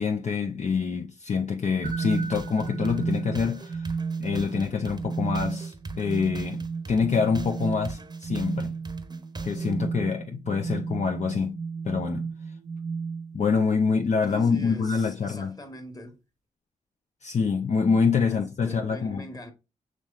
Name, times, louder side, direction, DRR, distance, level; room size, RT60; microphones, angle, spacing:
voice 1, 0.0-3.9 4.2-6.6 6.9-8.7 9.4-11.6 11.8-12.2 13.3-15.5 17.2-19.3, left 5 dB, 55° left, 0.6 m, -26 dB
sound 1, 1.8-13.6, right 5 dB, 60° right, 0.6 m, -33 dB
sound 2, 1.9-9.8, right 2 dB, 30° right, 0.8 m, -42 dB
voice 2, 14.3-16.2 18.3-19.5, left 1 dB, 25° left, 1.4 m, -42 dB
5.3 x 3.1 x 2.4 m
cardioid pair, 55°, 14 cm